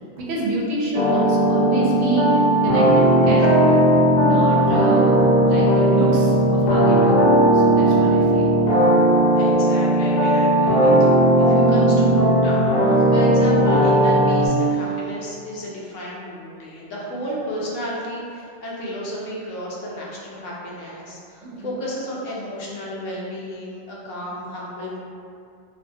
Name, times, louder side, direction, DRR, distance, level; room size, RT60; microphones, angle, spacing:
voice 1, 0.2-3.8 4.2-7.1 7.5-8.5 21.4-21.7, right 2 dB, 90° right, -4 dB, 0.9 m, -28 dB
sound 1, 0.9-14.5, right 1 dB, 55° left, 0.5 m, -16 dB
voice 2, 9.3-25.0, equal, 90° left, -5 dB, 1.0 m, -32 dB
2.6 x 2.2 x 2.6 m, 2.4 s
omnidirectional pair, 1.2 m